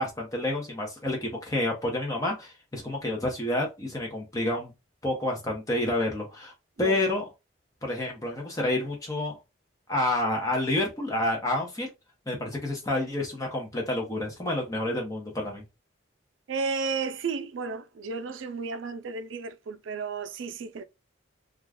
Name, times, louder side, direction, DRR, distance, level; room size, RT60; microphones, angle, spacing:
voice 1, 0.0-4.7 5.0-6.5 6.8-7.3 7.8-9.4 9.9-11.9 12.3-15.6, left 1 dB, 20° left, 0.7 m, -29 dB
voice 2, 16.5-20.8, right 4 dB, 85° right, 0.4 m, -33 dB
2.4 x 2.2 x 3.4 m
head